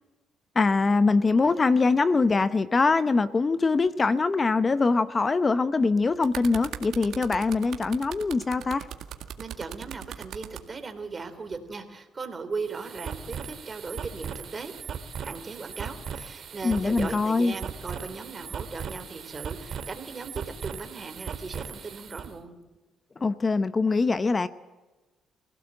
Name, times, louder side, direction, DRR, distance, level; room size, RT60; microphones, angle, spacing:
voice 1, 0.5-8.9 16.6-17.5 23.2-24.5, left 3 dB, 30° left, 13 dB, 0.8 m, -23 dB
sound 1, 5.9-10.6 11.5-11.7, right 10 dB, 80° right, 1.9 m, -39 dB
voice 2, 9.4-14.7 15.2-22.5, right 4 dB, 35° right, 8 dB, 3.4 m, -38 dB
sound 2, 12.5-22.3, right 7 dB, 60° right, 2.2 m, -38 dB
25.0 x 16.5 x 7.7 m, 1.2 s
cardioid pair, 90°, 0 cm